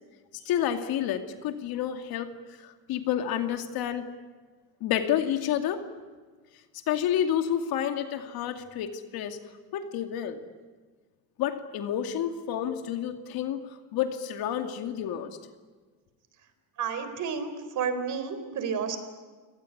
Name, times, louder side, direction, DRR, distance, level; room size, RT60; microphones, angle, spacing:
voice 1, 0.5-2.3 2.6-4.1 4.8-5.8 6.9-9.4 9.7-10.4 11.4-13.6 13.9-15.4, left 10 dB, 65° left, 7 dB, 2.5 m, -29 dB
voice 2, 16.8-17.5 17.7-19.0, right 6 dB, 50° right, 10 dB, 4.2 m, -30 dB
29.5 x 18.5 x 9.9 m, 1.4 s
cardioid pair, 125°, 39 cm